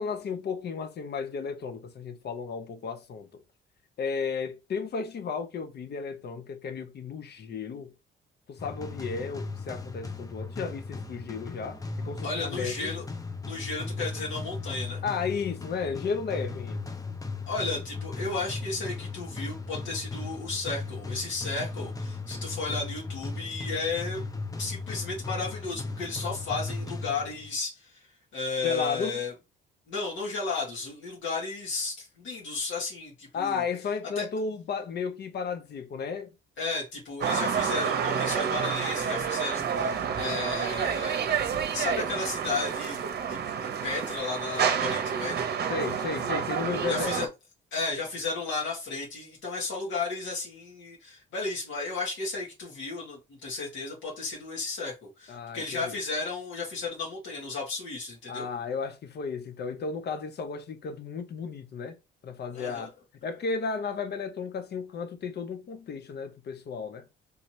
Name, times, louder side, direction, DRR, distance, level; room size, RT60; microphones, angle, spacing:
voice 1, 0.0-3.4 4.0-7.9 8.5-12.9 15.0-16.9 28.6-29.2 33.3-36.3 45.7-47.3 55.3-55.9 58.3-61.9 62.2-62.9 63.2-67.1, left 5 dB, 55° left, 0.8 m, -34 dB
sound 1, 8.6-27.6, left 3 dB, 20° left, 0.6 m, -37 dB
voice 2, 12.2-13.0 13.4-15.0 17.5-24.3 24.6-28.0 28.3-29.3 29.9-33.6 34.2-34.3 36.6-41.2 41.7-45.5 46.8-47.3 47.7-58.5 62.5-62.9, left 3 dB, 75° left, 2.1 m, -34 dB
sound 2, 37.2-47.3, right 7 dB, 55° right, 0.8 m, -29 dB
4.0 x 2.8 x 3.1 m
cardioid pair, 90°, 20 cm